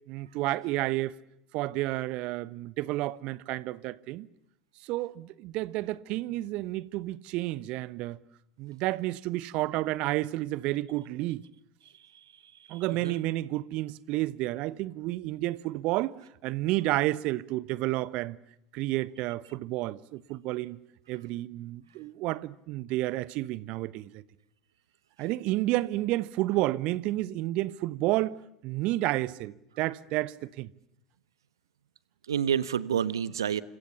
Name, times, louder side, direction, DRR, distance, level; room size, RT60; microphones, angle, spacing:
voice 1, 0.1-1.2 1.5-4.3 4.8-8.2 8.6-11.4 12.7-16.2 16.4-18.4 18.7-20.8 21.1-24.2 25.2-28.4 28.6-30.7, right 17 dB, 50° right, 1.1 m, -30 dB
voice 2, 12.7-13.2 32.3-33.6, right 8 dB, 75° right, 1.3 m, -29 dB
30.0 x 27.0 x 7.2 m
figure-of-eight pair, 75°, 2 cm